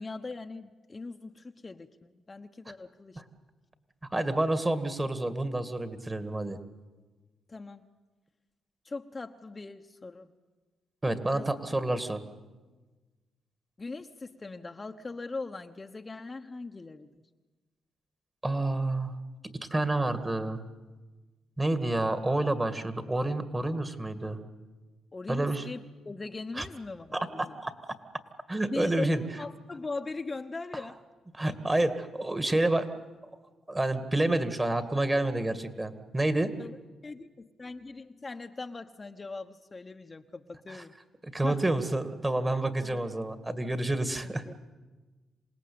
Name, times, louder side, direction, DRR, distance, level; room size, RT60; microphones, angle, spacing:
voice 1, 0.0-3.2 7.5-7.8 8.8-10.3 11.3-11.5 13.8-17.1 25.1-27.6 28.7-31.0 36.6-36.8 37.0-40.9 41.4-41.6 42.8-43.0 44.2-44.6, left 3 dB, 30° left, 5 dB, 1.1 m, -40 dB
voice 2, 4.1-6.6 11.0-12.2 18.4-19.1 19.7-20.6 21.6-24.4 25.3-25.7 26.6-26.7 27.1-27.7 28.5-29.2 31.4-32.9 33.7-36.5 40.7-40.8 41.2-44.4, right 2 dB, 20° right, 9 dB, 2.1 m, -29 dB
27.0 x 18.0 x 8.7 m, 1.3 s
cardioid pair, 75°, 0 cm